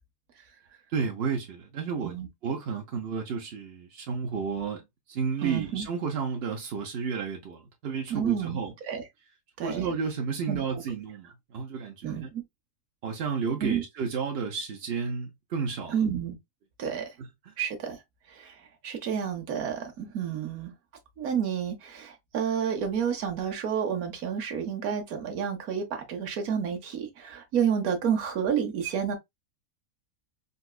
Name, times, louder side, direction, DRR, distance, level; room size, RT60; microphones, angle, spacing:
voice 1, 0.9-2.2 2.4-8.7 9.6-12.3 13.0-16.0 17.2-17.5, right 6 dB, 60° right, 0.7 m, -32 dB
voice 2, 5.4-5.8 8.1-8.6 8.9-9.0 9.6-9.8 10.5-10.6 12.0-12.4 13.6-13.8 15.9-16.4 16.8-17.1 17.6-18.0 18.3-18.5 18.8-20.7 21.2-29.2, right 8 dB, 80° right, 1.3 m, -30 dB
4.0 x 2.3 x 2.3 m
omnidirectional pair, 1.5 m